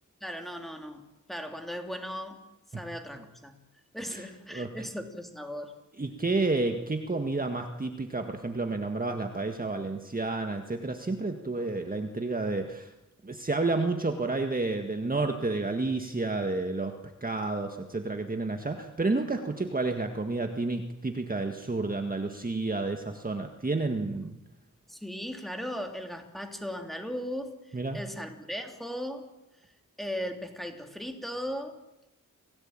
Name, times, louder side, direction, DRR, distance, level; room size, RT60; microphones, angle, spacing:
voice 1, 0.2-1.0 1.3-2.4 2.8-3.5 3.9-5.8 24.9-29.3 30.0-31.8, equal, ahead, 4 dB, 3.2 m, -37 dB
voice 2, 6.0-12.9 13.2-16.9 17.2-24.4 27.7-28.0, right 3 dB, 25° right, 5 dB, 1.8 m, -30 dB
28.0 x 18.0 x 8.9 m, 0.98 s
wide cardioid pair, 125°, 32 cm